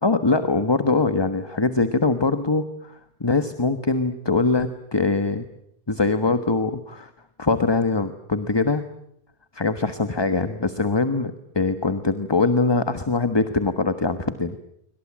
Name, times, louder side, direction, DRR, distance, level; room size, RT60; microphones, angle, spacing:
voice 1, 0.0-5.4 5.9-7.1 7.4-8.8 9.5-14.6, left 3 dB, 15° left, 10 dB, 1.2 m, -22 dB
26.5 x 24.5 x 7.5 m, 0.76 s
omnidirectional pair, 1.7 m